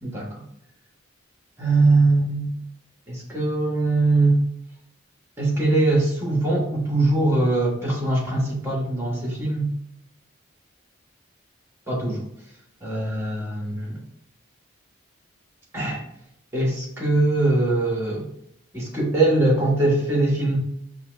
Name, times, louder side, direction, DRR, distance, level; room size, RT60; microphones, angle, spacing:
voice 1, 0.0-0.4 1.6-2.6 3.1-4.4 5.4-9.7 11.9-12.2 12.8-14.0 15.7-16.0 16.5-18.3 18.7-20.6, right 2 dB, 10° right, -2 dB, 1.2 m, -22 dB
5.6 x 2.4 x 3.0 m, 0.77 s
head